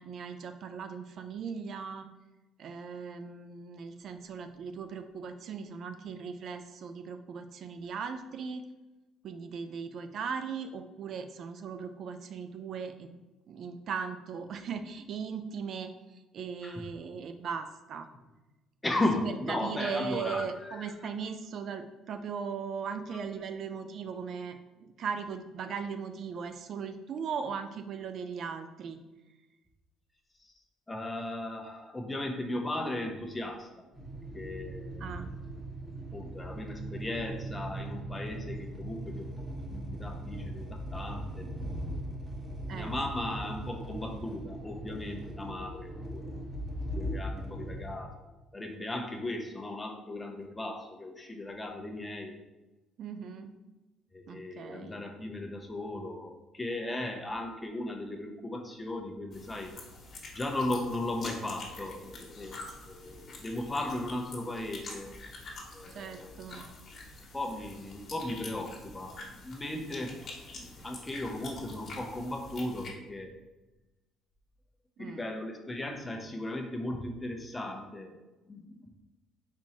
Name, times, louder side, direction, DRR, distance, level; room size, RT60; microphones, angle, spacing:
voice 1, 0.0-2.1 2.6-8.7 9.2-13.2 13.5-18.1 19.2-29.0 35.0-35.3 42.7-43.0 53.0-53.5 54.3-54.9 65.9-66.6 75.0-75.2, right 6 dB, 60° right, 8 dB, 0.3 m, -38 dB
voice 2, 18.8-20.9 30.4-30.5 30.9-33.9 34.3-35.2 36.1-39.2 39.7-41.5 42.7-46.3 46.9-52.4 54.1-59.7 60.3-62.5 62.8-65.1 65.7-66.5 67.3-70.1 70.6-73.3 75.0-78.1 78.5-78.9, left 1 dB, 15° left, 3 dB, 0.7 m, -36 dB
sound 1, 33.9-47.9, right 1 dB, 20° right, 1.3 m, -39 dB
sound 2, 59.3-72.9, left 3 dB, 45° left, 1.4 m, -46 dB
4.4 x 4.2 x 2.8 m, 1.1 s
supercardioid pair, 85°, 0 cm